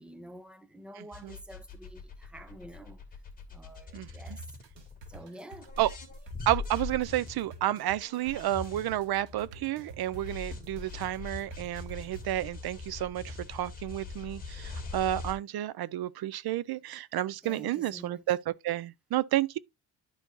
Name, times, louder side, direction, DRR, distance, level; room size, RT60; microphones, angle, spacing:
voice 1, 0.0-3.0 3.5-4.4 5.1-5.7 17.4-18.4, right 1 dB, ahead, 0.5 m, -48 dB
voice 2, 1.0-1.4 3.9-4.4 5.8-5.9 6.5-19.6, right 13 dB, 60° right, 0.5 m, -31 dB
sound 1, 1.1-5.2 5.6-15.3, left 4 dB, 20° left, 2.2 m, -42 dB
sound 2, 4.3-12.2, right 4 dB, 85° right, 2.7 m, -49 dB
11.5 x 4.5 x 2.6 m
cardioid pair, 170°, 43 cm